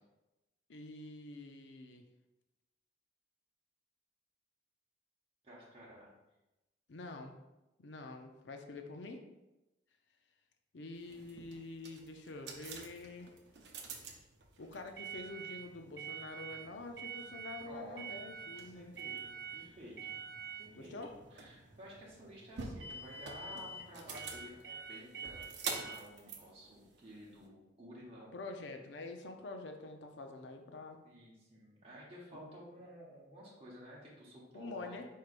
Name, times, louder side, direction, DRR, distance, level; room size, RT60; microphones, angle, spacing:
voice 1, 0.7-2.1 6.9-7.3 7.8-9.2 10.7-13.3 14.6-18.9 20.7-21.1 28.3-31.0 32.3-32.5 34.5-35.1, left 3 dB, 75° left, 5 dB, 0.5 m, -47 dB
voice 2, 5.4-6.1 17.6-18.0 18.5-20.2 20.6-28.4 31.0-35.0, equal, 30° right, -6 dB, 1.2 m, -53 dB
sound 1, 11.0-27.5, right 5 dB, 65° right, 0.6 m, -46 dB
4.7 x 4.6 x 2.5 m, 0.99 s
head